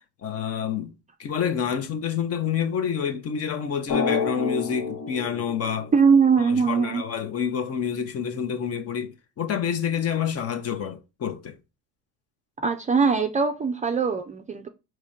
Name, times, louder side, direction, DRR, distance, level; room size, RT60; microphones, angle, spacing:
voice 1, 0.2-0.9 1.2-5.9 6.4-11.6, left 7 dB, 40° left, 1.0 m, -28 dB
Drum, 3.9-6.5, left 5 dB, 80° left, 1.9 m, -29 dB
voice 2, 5.9-7.0 12.6-14.7, right 5 dB, 20° right, 0.5 m, -21 dB
5.9 x 3.2 x 5.0 m
cardioid pair, 160°, 38 cm